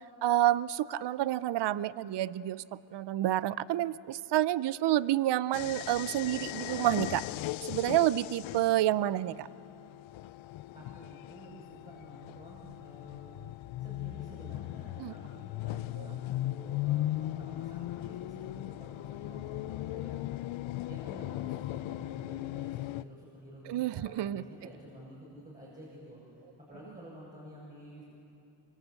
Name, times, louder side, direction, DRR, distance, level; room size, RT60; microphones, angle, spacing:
voice 1, 0.2-2.6 2.9-7.2 7.7-9.5 15.0-15.1 23.7-24.4, right 13 dB, 55° right, 18 dB, 0.6 m, -29 dB
sound 1, 5.5-23.0, left 16 dB, 70° left, 0.6 m, -38 dB
voice 2, 10.7-13.4 13.8-20.3 20.8-28.0, equal, 15° right, -7 dB, 7.7 m, -50 dB
25.5 x 25.0 x 8.2 m, 2.8 s
cardioid pair, 110°, 50 cm